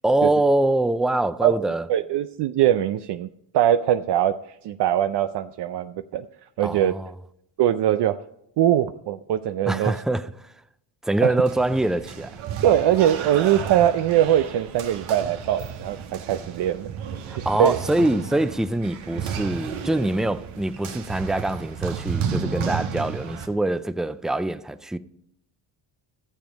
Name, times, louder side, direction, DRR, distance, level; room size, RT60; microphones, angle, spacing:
voice 1, 0.0-1.9 6.6-7.1 9.6-10.5 11.0-12.4 17.3-25.0, right 2 dB, ahead, 0.3 m, -24 dB
voice 2, 1.9-3.3 3.5-4.4 4.6-6.3 6.6-7.0 7.6-8.2 8.6-10.0 11.2-11.3 12.6-16.9 17.6-17.8, right 11 dB, 60° right, 0.6 m, -21 dB
sound 1, 11.4-23.5, right 7 dB, 75° right, 1.5 m, -33 dB
13.5 x 7.1 x 5.1 m
cardioid pair, 85°, 48 cm